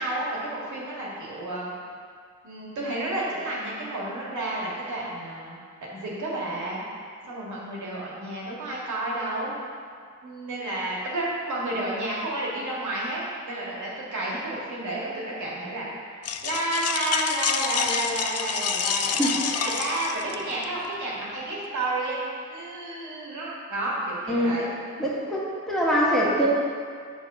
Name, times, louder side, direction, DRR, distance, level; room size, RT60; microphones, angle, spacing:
voice 1, 0.0-1.7 2.4-6.8 7.3-9.5 10.2-15.9 16.4-24.7, right 1 dB, 85° right, -5 dB, 2.0 m, -31 dB
sound 1, 16.2-20.6, left 7 dB, 55° left, 0.5 m, -28 dB
voice 2, 25.0-26.5, equal, ahead, -7 dB, 1.8 m, -23 dB
7.2 x 4.0 x 6.2 m, 2.1 s
cardioid pair, 90°, 29 cm